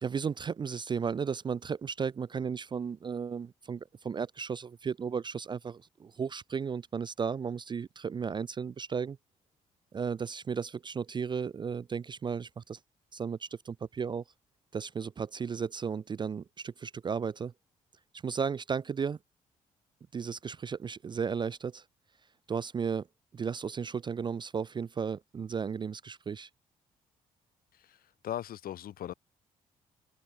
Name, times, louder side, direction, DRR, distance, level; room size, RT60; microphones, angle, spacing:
voice 1, 0.0-9.2 9.9-12.8 13.1-14.2 14.7-17.5 18.2-19.2 20.1-21.8 22.5-23.1 23.3-26.5, right 6 dB, 25° right, 0.3 m, -34 dB
voice 2, 27.7-29.1, left 11 dB, 60° left, 1.1 m, -39 dB
hypercardioid pair, 45°, 17 cm